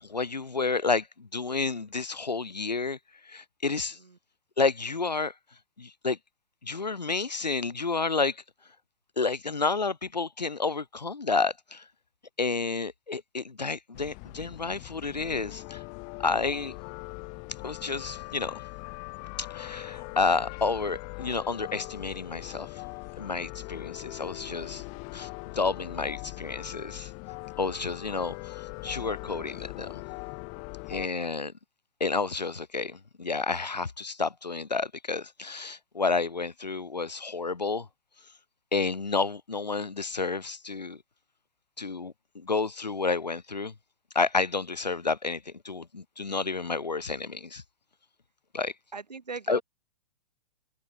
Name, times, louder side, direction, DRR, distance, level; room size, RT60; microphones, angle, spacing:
voice 1, 0.0-3.0 3.2-4.0 4.6-5.3 5.8-6.2 6.6-8.4 9.2-11.9 12.4-15.8 16.2-16.7 17.6-18.6 19.4-22.8 23.2-24.8 25.1-27.1 27.6-30.0 30.9-31.5 32.0-37.9 38.7-41.0 41.8-43.7 44.2-47.6 48.5-48.7 49.5-49.6, left 4 dB, 85° left, 1.8 m, -30 dB
sound 1, 13.9-31.1, left 32 dB, 35° left, 6.9 m, -41 dB
voice 2, 48.9-49.6, right 4 dB, 80° right, 4.7 m, -40 dB
figure-of-eight pair, 115°, 21 cm